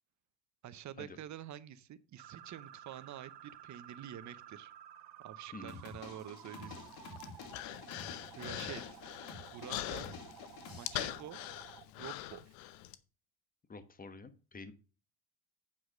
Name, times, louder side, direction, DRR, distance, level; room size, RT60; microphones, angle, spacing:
voice 1, 0.6-4.7 5.2-6.7 8.4-9.0 9.5-10.1 10.7-11.4 12.0-12.4, right 10 dB, 40° right, 0.8 m, -47 dB
sound 1, 2.2-11.8, right 10 dB, 55° right, 1.4 m, -53 dB
sound 2, 5.7-11.2, left 4 dB, 55° left, 3.2 m, -50 dB
Human voice, 6.7-13.0, left 15 dB, 85° left, 0.9 m, -43 dB
voice 2, 13.7-14.7, left 3 dB, 20° left, 1.1 m, -49 dB
8.7 x 4.8 x 6.3 m
cardioid pair, 115°, 46 cm